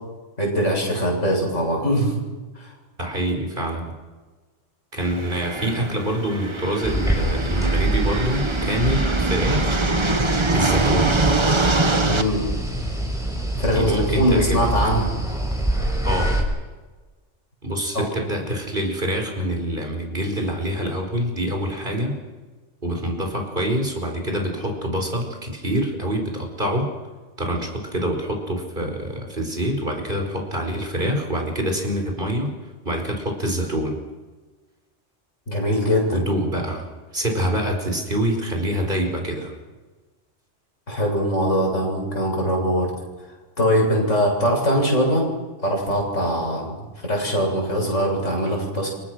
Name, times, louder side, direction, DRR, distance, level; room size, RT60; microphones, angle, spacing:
voice 1, 0.4-2.2 2.6-2.7 12.0-12.4 13.6-15.1 17.9-18.0 35.5-36.2 40.9-42.9 43.6-45.2 45.6-48.9, equal, 80° left, 0 dB, 8.0 m, -22 dB
voice 2, 3.0-3.8 4.9-9.8 10.5-11.2 13.7-14.7 16.0-16.4 17.6-22.2 22.8-26.9 27.4-32.5 32.8-33.9 36.1-36.8 37.1-39.5, right 1 dB, 45° right, 3 dB, 5.0 m, -25 dB
sound 1, 5.0-12.2, right 2 dB, 25° right, 1.3 m, -24 dB
sound 2, 6.8-16.4, right 1 dB, 5° right, 5.9 m, -25 dB
28.0 x 24.5 x 6.3 m, 1.3 s
omnidirectional pair, 1.3 m